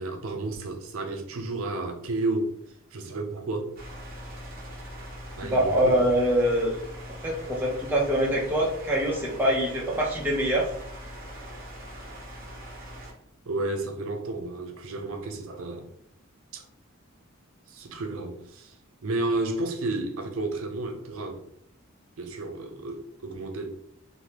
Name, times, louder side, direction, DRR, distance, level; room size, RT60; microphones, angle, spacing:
voice 1, 0.0-2.5 2.9-3.7 5.4-6.1 13.5-15.9 16.5-16.6 17.7-18.8 19.0-21.4 22.2-23.7, right 2 dB, 80° right, 4 dB, 0.5 m, -32 dB
sound 1, 3.8-13.1, equal, 45° right, 0.8 m, -41 dB
voice 2, 5.5-6.8 7.2-10.7, equal, 10° right, -4 dB, 0.7 m, -24 dB
3.3 x 2.1 x 2.9 m, 0.68 s
head